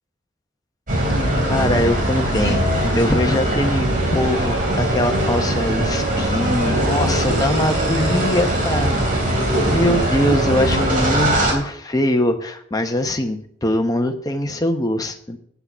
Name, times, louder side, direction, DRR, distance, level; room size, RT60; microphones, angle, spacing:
sound 1, 0.9-11.5, right 1 dB, 45° right, 3.5 m, -20 dB
voice 1, 1.4-15.4, left 1 dB, 20° left, 5 dB, 1.1 m, -22 dB
8.8 x 8.2 x 7.3 m, 0.66 s
head